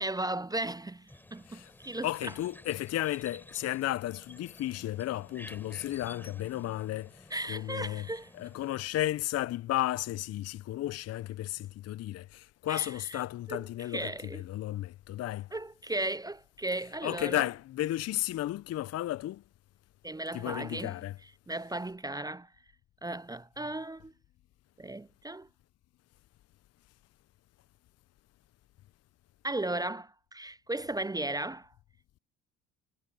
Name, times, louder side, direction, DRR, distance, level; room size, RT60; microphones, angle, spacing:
voice 1, 0.0-2.3 7.3-8.3 12.7-13.2 13.5-13.6 13.9-14.4 15.5-17.5 20.0-20.9 21.5-22.5 23.0-24.1 24.8-25.5 29.4-31.7, right 2 dB, 10° right, 0.7 m, -36 dB
sound 1, 1.1-8.8, left 1 dB, 5° left, 4.7 m, -52 dB
voice 2, 2.0-8.1 8.3-15.5 17.0-19.4 20.3-21.2, left 14 dB, 50° left, 0.7 m, -33 dB
hypercardioid pair, 55°, 32 cm